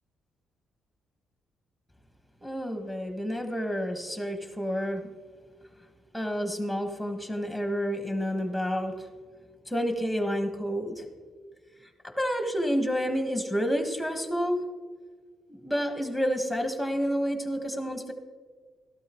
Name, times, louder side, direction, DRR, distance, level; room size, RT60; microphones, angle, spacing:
voice 1, 2.4-5.0 6.1-8.9 9.7-11.0 12.2-14.6 15.5-18.1, equal, ahead, 5 dB, 1.4 m, -29 dB
13.5 x 12.0 x 3.1 m, 1.5 s
cardioid pair, 90°, 0 cm